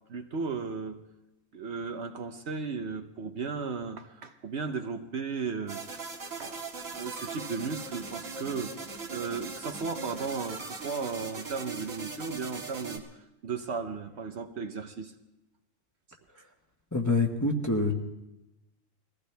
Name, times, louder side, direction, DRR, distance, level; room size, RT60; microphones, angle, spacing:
voice 1, 0.1-1.0 1.5-5.8 6.4-6.6 6.9-8.7 9.1-13.1 13.4-15.1 16.4-16.5, right 5 dB, 60° right, 7 dB, 1.0 m, -35 dB
sound 1, 5.7-13.0, right 4 dB, 80° right, 2.2 m, -40 dB
voice 2, 16.9-17.9, left 2 dB, 15° left, 0 dB, 1.3 m, -26 dB
21.5 x 15.5 x 3.4 m, 0.95 s
omnidirectional pair, 1.3 m